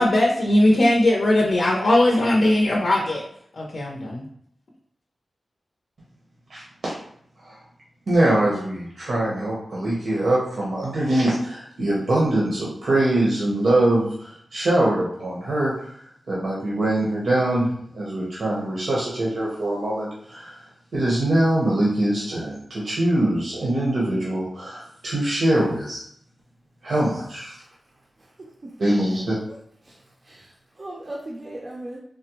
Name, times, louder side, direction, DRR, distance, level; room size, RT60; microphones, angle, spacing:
voice 1, 0.0-3.2 3.5-4.2, left 1 dB, 65° left, -3 dB, 0.5 m, -19 dB
voice 2, 6.5-6.9 7.4-7.6 8.1-20.6 20.9-26.0 26.8-27.6 28.8-29.3, right 1 dB, 70° right, -6 dB, 0.7 m, -23 dB
voice 3, 28.2-28.8 29.1-29.2 29.8-32.0, right 1 dB, 35° right, -4 dB, 0.5 m, -39 dB
3.5 x 2.0 x 2.8 m, 0.67 s
wide cardioid pair, 135°, 0 cm